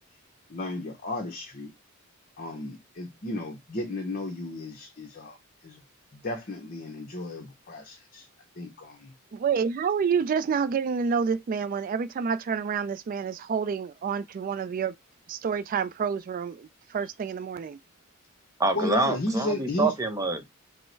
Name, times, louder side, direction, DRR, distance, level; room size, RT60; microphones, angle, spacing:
voice 1, 0.5-1.7 2.4-5.4 5.6-5.8 6.1-8.3 8.6-9.1 18.7-19.9, left 1 dB, 45° left, 0.8 m, -33 dB
voice 2, 9.3-14.9 15.3-17.8, right 6 dB, 40° right, 0.3 m, -28 dB
voice 3, 18.6-20.5, right 3 dB, 15° right, 0.7 m, -26 dB
5.3 x 2.1 x 4.4 m
head